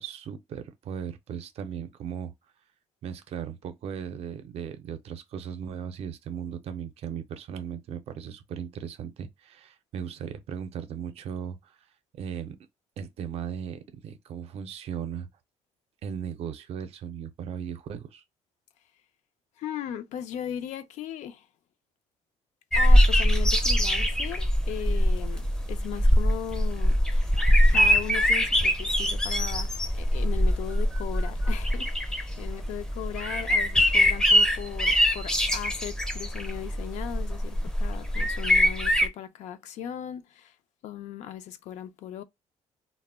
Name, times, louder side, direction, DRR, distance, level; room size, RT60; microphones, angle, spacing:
voice 1, 0.0-2.3 3.0-11.8 12.2-12.6 13.0-15.3 16.0-18.2, right 8 dB, 60° right, 0.4 m, -37 dB
voice 2, 19.6-21.5 22.7-27.3 27.7-29.7 30.0-40.6 40.8-42.2, left 11 dB, 75° left, 0.4 m, -38 dB
sound 1, 22.7-39.1, equal, 5° left, 0.4 m, -23 dB
2.1 x 2.0 x 3.3 m
cardioid pair, 150°, 12 cm